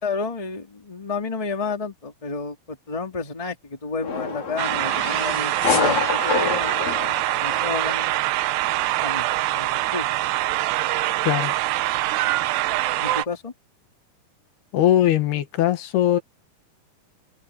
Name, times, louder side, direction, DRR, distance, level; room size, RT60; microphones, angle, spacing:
voice 1, 0.0-8.1 9.0-9.3 9.5-10.0 10.8-10.9 13.0-13.5, left 4 dB, 10° left, 1.8 m, -31 dB
sound 1, 4.0-8.1, left 4 dB, 45° left, 5.1 m, -27 dB
sound 2, 4.6-13.3, right 16 dB, 85° right, 2.9 m, -24 dB
voice 2, 11.2-11.5 14.7-16.2, left 12 dB, 75° left, 3.4 m, -20 dB
omnidirectional pair, 4.7 m